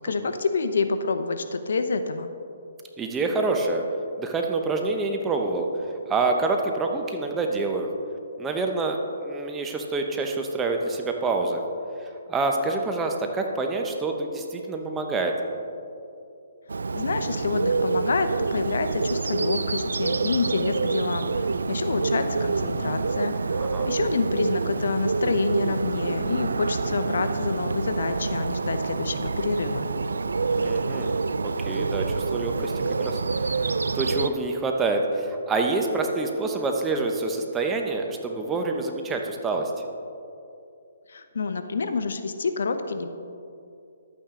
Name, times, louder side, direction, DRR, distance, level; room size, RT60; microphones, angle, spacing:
voice 1, 0.0-2.3 16.9-29.9 41.1-43.1, left 4 dB, 70° left, 9 dB, 0.7 m, -27 dB
voice 2, 3.0-3.8 4.2-5.7 6.1-7.9 8.4-11.6 12.3-15.3 23.6-23.9 30.5-32.7 33.0-33.2 33.9-39.7, right 3 dB, 10° right, 3 dB, 0.8 m, -27 dB
Bird, 16.7-34.3, right 4 dB, 85° right, 0.3 m, -27 dB
11.5 x 8.8 x 3.7 m, 2.6 s
hypercardioid pair, 150°, 0 cm